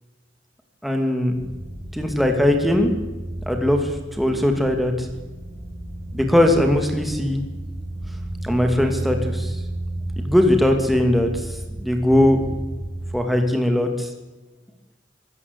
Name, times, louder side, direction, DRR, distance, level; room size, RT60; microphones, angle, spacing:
voice 1, 0.8-1.3 1.9-2.9 3.5-5.1 6.1-7.4 8.4-9.6 10.2-11.5 11.8-12.4 13.1-14.1, left 1 dB, ahead, 4 dB, 2.6 m, -20 dB
sound 1, 1.3-13.1, right 1 dB, 65° left, 6.6 m, -32 dB
25.0 x 14.0 x 8.3 m, 1.2 s
head